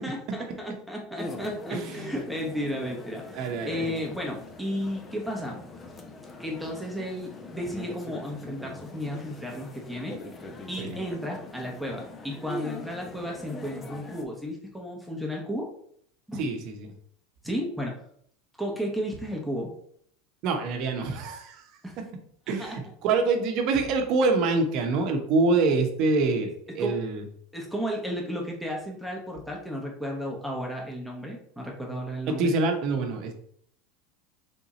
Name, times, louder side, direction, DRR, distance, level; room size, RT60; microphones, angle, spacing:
voice 1, 0.0-5.7 6.4-10.2 10.7-15.7 16.3-16.5 17.4-18.0 18.6-19.7 21.8-22.0 22.6-22.8 26.8-27.0 27.5-32.5, equal, ahead, -1 dB, 1.0 m, -33 dB
sound 1, 1.2-14.2, left 2 dB, 25° left, 0.6 m, -41 dB
voice 2, 1.7-2.1 3.3-3.9 10.8-11.0 16.4-16.9 20.4-21.7 22.0-22.1 22.5-27.2 32.3-33.3, right 3 dB, 55° right, 5 dB, 0.8 m, -26 dB
3.6 x 2.7 x 4.1 m, 0.64 s
supercardioid pair, 115°, 0 cm